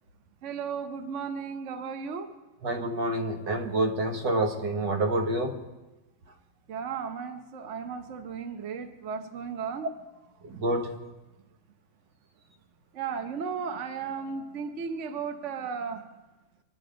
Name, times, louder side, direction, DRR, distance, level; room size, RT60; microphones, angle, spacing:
voice 1, 0.4-2.3 6.7-9.9 12.9-16.2, right 6 dB, 50° right, 7 dB, 1.2 m, -35 dB
voice 2, 2.6-5.6 10.4-10.9, right 1 dB, 85° right, 3 dB, 2.2 m, -28 dB
24.5 x 10.5 x 5.1 m, 1.1 s
omnidirectional pair, 1.8 m